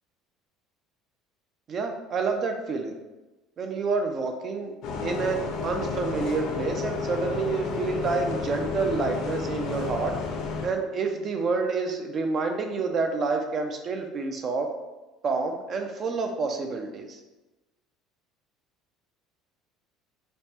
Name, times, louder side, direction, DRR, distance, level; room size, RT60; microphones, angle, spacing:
voice 1, 1.7-3.0 3.6-4.7 5.0-10.1 10.6-14.7 15.2-17.2, right 4 dB, 35° right, 4 dB, 0.4 m, -28 dB
Bus, 4.8-10.7, left 5 dB, 60° left, 0.6 m, -31 dB
5.2 x 2.1 x 2.8 m, 1.1 s
cardioid pair, 140°, 0 cm